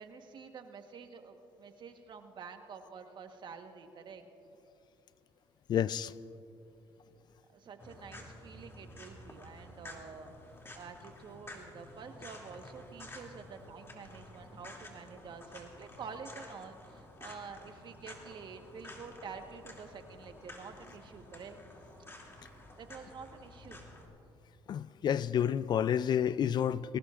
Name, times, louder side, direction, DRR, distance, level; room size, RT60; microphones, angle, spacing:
voice 1, 0.0-4.2 7.5-10.3 10.7-21.6 22.8-23.9, right 5 dB, 55° right, 6 dB, 1.3 m, -48 dB
voice 2, 5.7-6.1 24.7-27.0, left 9 dB, 50° left, 18 dB, 0.3 m, -29 dB
sound 1, 7.8-24.1, left 2 dB, 25° left, 2.7 m, -51 dB
22.0 x 18.5 x 2.5 m, 2.7 s
supercardioid pair, 80°, 10 cm